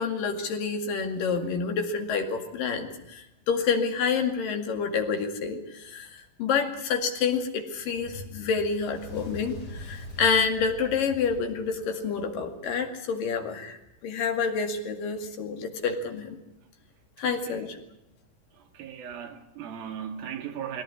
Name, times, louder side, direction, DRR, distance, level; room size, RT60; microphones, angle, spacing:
voice 1, 0.0-16.4 17.2-17.8, left 5 dB, 70° left, 3.8 m, -28 dB
Fire, 7.9-12.4, left 2 dB, 30° left, 2.6 m, -43 dB
voice 2, 17.2-17.7 18.5-20.8, right 8 dB, 85° right, 3.9 m, -38 dB
22.5 x 17.0 x 9.7 m
omnidirectional pair, 4.1 m